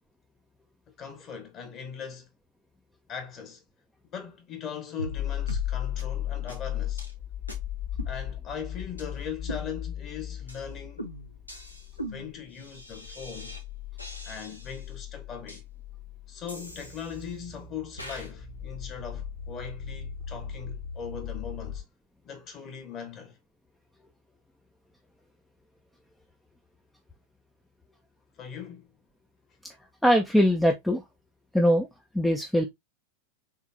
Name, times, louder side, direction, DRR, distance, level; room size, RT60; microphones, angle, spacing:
voice 1, 1.0-2.3 3.1-3.6 4.1-7.0 8.0-11.0 12.1-13.6 14.2-15.6 16.3-21.8 22.2-23.4 28.4-28.9, left 7 dB, 30° left, 1.5 m, -39 dB
sound 1, 5.0-5.2 5.5-5.7 6.0-6.1 6.5-6.6 7.0-7.1 7.5-7.6 8.0-8.6 9.0-9.1 9.5-10.1 10.5-10.6 11.0-13.6 14.0-14.9 15.5-15.6 16.5-17.4 18.0-18.3, right 1 dB, 90° left, 1.0 m, -41 dB
sound 2, 5.1-21.8, left 10 dB, 50° left, 1.8 m, -37 dB
voice 2, 30.0-31.0 31.5-31.9 32.1-32.6, equal, ahead, 0.6 m, -21 dB
3.7 x 3.5 x 2.8 m
figure-of-eight pair, 90°, 0 cm